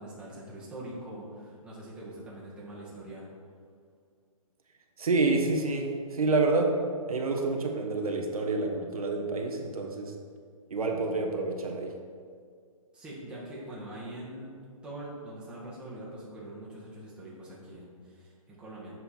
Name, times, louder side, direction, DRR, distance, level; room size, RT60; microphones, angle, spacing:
voice 1, 0.0-3.3 12.9-14.6 14.8-19.0, right 1 dB, 5° right, -8 dB, 1.6 m, -43 dB
voice 2, 5.0-6.7 7.1-10.1 10.7-11.9, right 3 dB, 80° right, 2 dB, 1.1 m, -28 dB
7.7 x 5.5 x 4.3 m, 2.1 s
hypercardioid pair, 150°, 18 cm